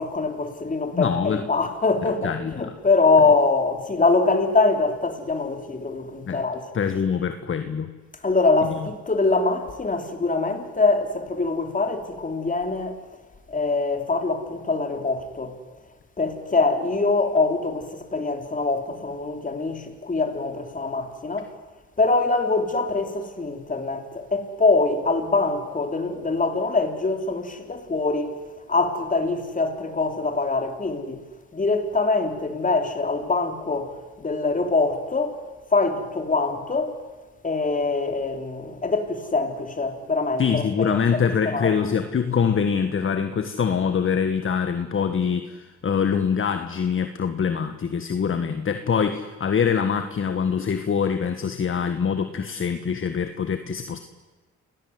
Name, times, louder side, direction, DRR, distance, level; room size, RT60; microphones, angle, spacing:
voice 1, 0.0-6.7 8.2-13.0 13.5-15.6 16.2-21.5 22.0-28.4 28.7-31.2 31.5-33.9 34.2-35.4 35.7-37.0 37.4-41.8, left 3 dB, 25° left, 3.7 m, -24 dB
voice 2, 0.9-1.5 2.2-2.7 6.3-6.4 6.7-7.9 8.6-8.7 40.4-54.0, left 6 dB, 45° left, 1.6 m, -24 dB
28.5 x 18.5 x 9.7 m
cardioid pair, 90°, 30 cm